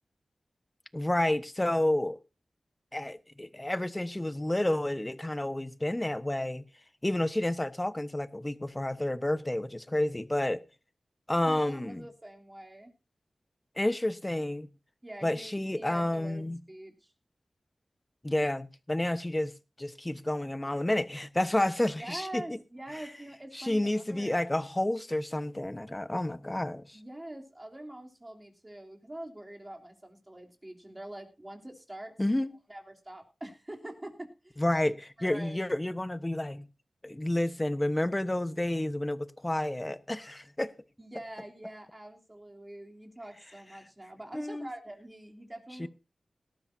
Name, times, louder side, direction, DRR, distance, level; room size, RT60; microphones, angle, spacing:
voice 1, 0.9-2.2 2.9-6.6 7.0-10.6 11.3-12.0 13.8-14.7 15.2-16.6 18.2-19.5 19.8-22.4 23.5-27.0 32.2-32.5 34.6-36.7 37.0-40.7 44.3-44.7 45.8-45.9, left 1 dB, 20° left, 1.1 m, -30 dB
voice 2, 11.4-12.9 15.0-17.1 22.0-24.5 26.9-32.1 32.7-34.6 35.2-35.6 41.0-45.9, right 1 dB, 25° right, 3.2 m, -44 dB
18.5 x 13.0 x 2.7 m
cardioid pair, 50°, 0 cm